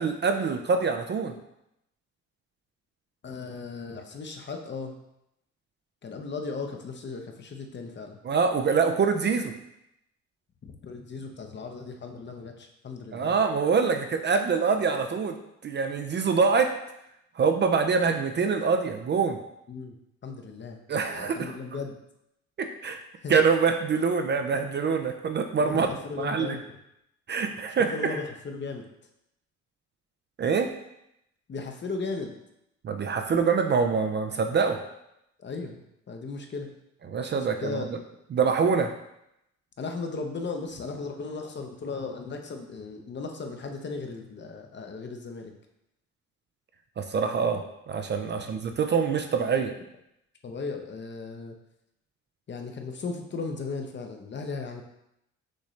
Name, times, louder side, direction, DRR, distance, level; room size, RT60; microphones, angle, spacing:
voice 1, 0.0-1.4 8.2-9.5 13.1-15.4 15.6-16.8 17.4-19.4 20.9-21.5 22.6-23.0 23.3-25.9 26.2-26.6 27.3-28.2 30.4-30.7 32.8-34.8 37.1-38.0 38.3-38.9 47.0-49.7, right 5 dB, 35° right, 6 dB, 0.4 m, -25 dB
voice 2, 3.2-5.0 6.0-8.2 10.6-13.4 19.7-20.0 20.2-20.8 21.1-22.0 23.2-23.3 25.6-26.6 27.9-28.9 31.5-32.3 33.3-33.4 35.4-36.7 37.3-38.0 39.8-45.5 48.3-48.6 50.4-51.6 52.5-54.8, left 4 dB, 40° left, 4 dB, 0.7 m, -36 dB
6.3 x 2.6 x 3.2 m, 0.82 s
cardioid pair, 90°, 30 cm